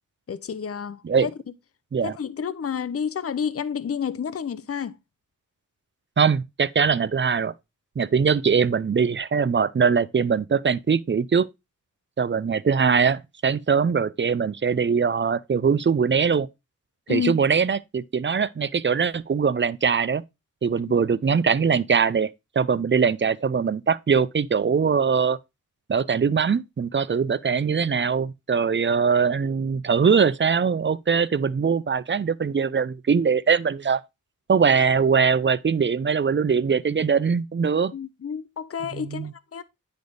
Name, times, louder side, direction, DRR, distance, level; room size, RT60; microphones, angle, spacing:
voice 1, 0.3-1.3 2.0-5.0 17.1-17.4 37.9-39.6, left 7 dB, 45° left, 0.5 m, -30 dB
voice 2, 6.2-7.5 8.0-11.5 12.2-16.5 17.1-20.2 20.6-22.3 22.6-25.4 25.9-34.0 34.5-37.9 38.9-39.3, right 6 dB, 35° right, 0.4 m, -22 dB
9.3 x 3.5 x 3.8 m
wide cardioid pair, 45°, 32 cm